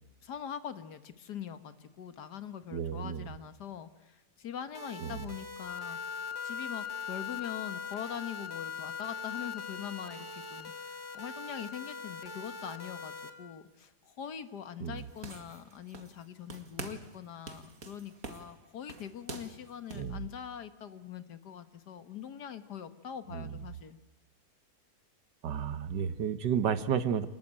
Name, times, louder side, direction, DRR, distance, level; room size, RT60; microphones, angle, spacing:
voice 1, 0.2-6.0 6.4-24.0, left 9 dB, 75° left, 11 dB, 1.9 m, -43 dB
voice 2, 2.7-3.3 5.0-5.2 14.8-15.0 19.9-20.2 23.3-23.5 25.4-27.3, right 8 dB, 85° right, 13 dB, 1.8 m, -32 dB
sound 1, 4.7-13.3, left 1 dB, 15° left, 1.7 m, -45 dB
Wind instrument woodwind instrument, 5.6-13.6, left 10 dB, 60° left, 1.7 m, -42 dB
sound 2, 15.0-16.3 16.5-17.2 17.5-20.1, right 4 dB, 55° right, 2.3 m, -45 dB
27.5 x 20.0 x 8.8 m, 1.0 s
omnidirectional pair, 1.8 m